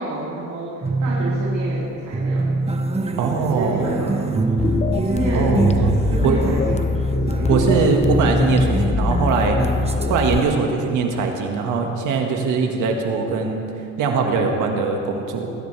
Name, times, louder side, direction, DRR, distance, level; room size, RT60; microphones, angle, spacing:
voice 1, 0.0-2.6 3.3-7.5 9.8-10.1, right 1 dB, 70° right, -6 dB, 3.0 m, -29 dB
sound 1, 0.8-10.5, right 3 dB, 20° right, 1.2 m, -24 dB
voice 2, 3.2-3.9 5.3-5.9 6.2-6.4 7.5-9.6 10.1-13.6 14.0-15.5, right 5 dB, 90° right, 2 dB, 1.9 m, -21 dB
sound 2, 4.6-10.4, left 4 dB, 20° left, 0.6 m, -23 dB
20.5 x 15.5 x 3.4 m, 2.7 s
cardioid pair, 90°, 30 cm